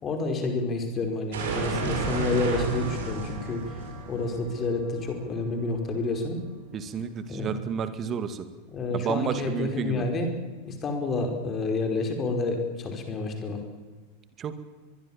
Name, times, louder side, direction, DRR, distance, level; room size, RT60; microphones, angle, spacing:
voice 1, 0.0-6.4 7.3-7.6 8.7-10.3 10.6-13.6, left 3 dB, 25° left, 5 dB, 5.1 m, -29 dB
sound 1, 1.3-6.1, right 4 dB, 60° right, 7.0 m, -32 dB
voice 2, 6.7-8.5 8.9-10.0 14.4-14.5, right 7 dB, 25° right, 11 dB, 2.2 m, -31 dB
23.5 x 21.5 x 7.5 m, 1.4 s
figure-of-eight pair, 90°, 0 cm